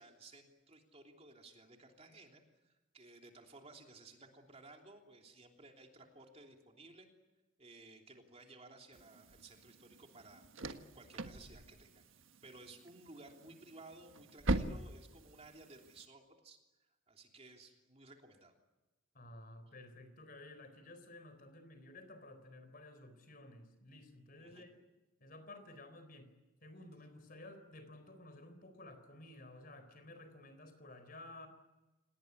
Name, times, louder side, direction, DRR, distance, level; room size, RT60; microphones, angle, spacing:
voice 1, 0.0-7.1 7.6-12.0 12.4-16.6 17.1-18.5 24.4-24.7, right 2 dB, 30° right, 3 dB, 3.2 m, -57 dB
sound 1, 8.9-16.1, right 1 dB, 70° right, 1.5 m, -42 dB
voice 2, 19.1-24.8 25.2-26.3 26.6-31.5, left 2 dB, 45° left, 10 dB, 4.0 m, -54 dB
28.0 x 19.0 x 9.8 m, 1.1 s
head